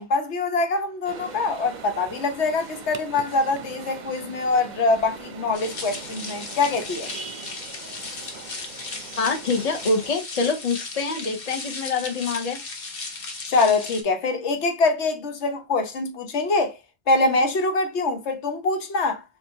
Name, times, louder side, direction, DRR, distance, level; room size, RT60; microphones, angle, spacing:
voice 1, 0.0-7.1 13.5-16.7 17.1-19.2, left 3 dB, 90° left, 1.2 m, -24 dB
sound 1, 1.0-10.1, right 5 dB, 50° right, 0.7 m, -41 dB
sound 2, 5.5-14.0, left 3 dB, 55° left, 1.1 m, -36 dB
voice 2, 9.2-12.6, left 4 dB, 40° left, 0.8 m, -25 dB
6.6 x 2.5 x 2.8 m
omnidirectional pair, 1.1 m